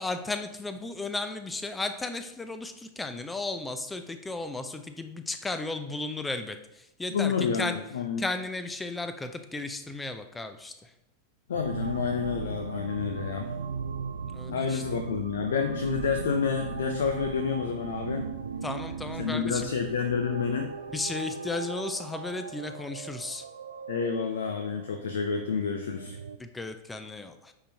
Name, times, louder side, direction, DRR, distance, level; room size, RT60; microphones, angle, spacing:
voice 1, 0.0-7.8 8.2-10.9 14.3-14.8 18.6-19.7 20.9-23.4 26.4-27.5, left 3 dB, 10° left, 8 dB, 0.5 m, -34 dB
voice 2, 7.1-8.2 11.5-13.5 14.5-18.3 19.2-20.7 23.9-26.2, left 6 dB, 65° left, 6 dB, 0.5 m, -29 dB
sound 1, 11.5-26.4, right 5 dB, 70° right, 0.4 m, -38 dB
9.8 x 3.8 x 2.8 m, 0.89 s
figure-of-eight pair, 90°, 0 cm